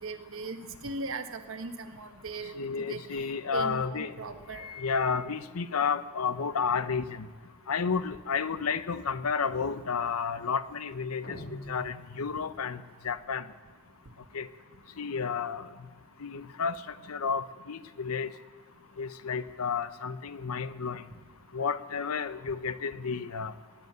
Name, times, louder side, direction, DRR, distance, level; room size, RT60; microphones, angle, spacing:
voice 1, 0.0-3.0 3.5-4.7, right 3 dB, 65° right, 7 dB, 1.3 m, -38 dB
voice 2, 2.6-4.1 4.6-7.3 7.7-11.4 11.7-12.8 13.0-13.4 14.3-14.5 15.0-15.7 16.2-16.8 17.1-18.3 19.0-21.0 21.5-23.5, left 5 dB, 85° left, 14 dB, 0.7 m, -31 dB
sound 1, 11.2-12.7, left 1 dB, 50° left, 1.4 m, -45 dB
19.0 x 8.1 x 9.3 m, 1.4 s
head